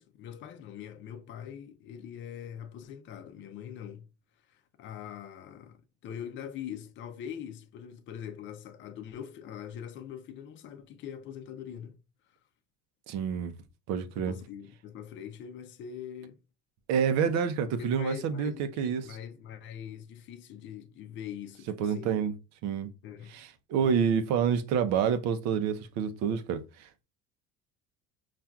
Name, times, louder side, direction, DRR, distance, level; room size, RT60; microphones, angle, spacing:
voice 1, 0.0-4.1 4.5-12.0 14.2-16.4 17.8-22.2 23.0-23.3 23.7-24.0, left 9 dB, 40° left, 0.6 m, -43 dB
voice 2, 13.1-13.5 13.9-14.3 16.9-19.0 21.8-22.3 22.6-22.9 23.3-27.0, right 7 dB, 65° right, 0.7 m, -28 dB
5.6 x 2.5 x 2.3 m
cardioid pair, 160°, 30 cm